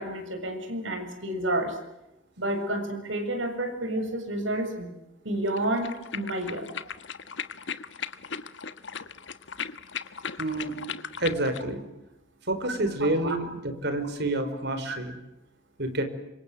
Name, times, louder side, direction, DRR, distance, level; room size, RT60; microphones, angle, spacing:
voice 1, 0.0-1.8 2.4-4.9 5.2-6.7 13.2-13.4 14.9-15.0, right 1 dB, 80° right, 6 dB, 7.0 m, -30 dB
sound 1, 5.5-11.7, left 7 dB, 65° left, 1.4 m, -37 dB
voice 2, 10.4-10.8 11.2-11.8 12.5-13.5 13.8-15.1 15.8-16.0, right 1 dB, 60° right, 8 dB, 4.8 m, -28 dB
26.5 x 25.0 x 7.7 m, 0.92 s
head